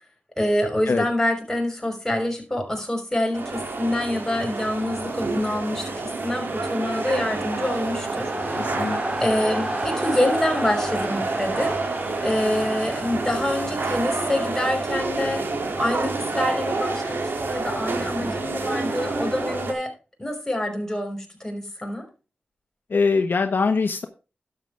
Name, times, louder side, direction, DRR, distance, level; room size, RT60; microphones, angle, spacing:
voice 1, 0.4-8.6 9.2-11.8 12.2-15.4 15.8-19.9 20.2-22.0, left 1 dB, 15° left, 2 dB, 6.1 m, -26 dB
sound 1, 3.3-19.7, right 3 dB, 75° right, 2.8 m, -28 dB
sound 2, 4.2-16.2, right 1 dB, 25° right, 3.4 m, -34 dB
voice 2, 8.6-9.0 22.9-24.0, left 4 dB, 65° left, 6 dB, 1.3 m, -22 dB
12.0 x 8.3 x 3.5 m, 0.32 s
cardioid pair, 55°, 4 cm